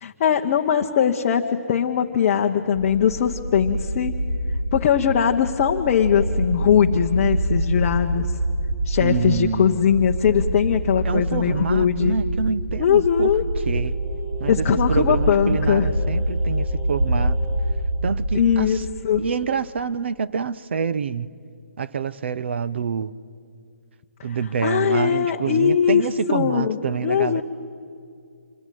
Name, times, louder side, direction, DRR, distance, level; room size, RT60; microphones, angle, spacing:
voice 1, 0.0-4.1 4.7-8.3 8.8-12.2 12.8-13.4 14.5-15.9 18.3-18.8 19.0-19.2 24.6-26.0 26.3-27.4, left 8 dB, 25° left, 0.8 m, -20 dB
sound 1, 2.7-18.6, right 1 dB, 70° right, 6.1 m, -26 dB
voice 2, 9.0-9.8 11.0-13.3 13.6-13.9 14.4-17.4 18.0-18.8 19.2-21.3 21.8-23.1 24.2-27.4, right 6 dB, 45° right, 0.7 m, -26 dB
Singing, 13.9-17.8 18.1-18.2, right 1 dB, 10° right, 6.4 m, -40 dB
26.0 x 21.0 x 9.2 m
hypercardioid pair, 170°, 8 cm